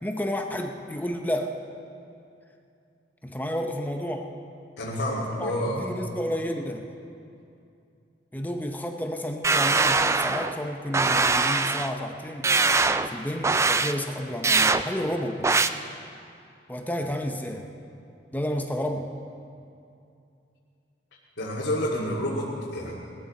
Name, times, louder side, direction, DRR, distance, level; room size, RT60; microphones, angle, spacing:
voice 1, 0.0-1.6 3.2-4.3 5.4-6.9 8.3-12.5 13.1-15.5 16.7-17.7 18.3-19.1, equal, 10° left, 4 dB, 0.7 m, -31 dB
voice 2, 4.8-5.9 21.4-22.9, equal, 80° left, -7 dB, 2.1 m, -29 dB
sound 1, 9.4-10.5 10.9-11.9 12.4-13.1 13.4-13.9 14.4-14.8 15.4-15.7, right 4 dB, 15° right, 0.3 m, -22 dB
19.5 x 13.5 x 4.2 m, 2.6 s
head